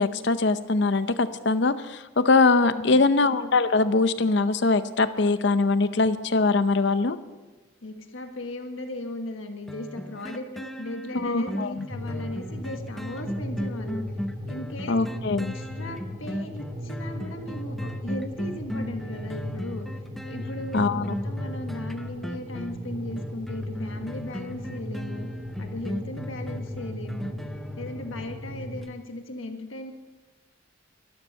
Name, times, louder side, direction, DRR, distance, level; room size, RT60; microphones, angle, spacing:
voice 1, 0.0-7.2 11.1-11.9 14.9-15.5 20.7-21.1, left 3 dB, 55° left, 12 dB, 0.7 m, -22 dB
voice 2, 2.6-3.0 7.8-14.0 14.5-15.0 15.4-19.9 20.2-25.3 25.6-27.4 27.8-29.9, left 1 dB, 80° left, 5 dB, 1.5 m, -37 dB
sound 1, 9.7-28.4 28.8-28.9, equal, ahead, 0.5 m, -37 dB
sound 2, 11.9-28.8, left 1 dB, 25° right, 3.1 m, -36 dB
13.0 x 13.0 x 5.4 m, 1.2 s
head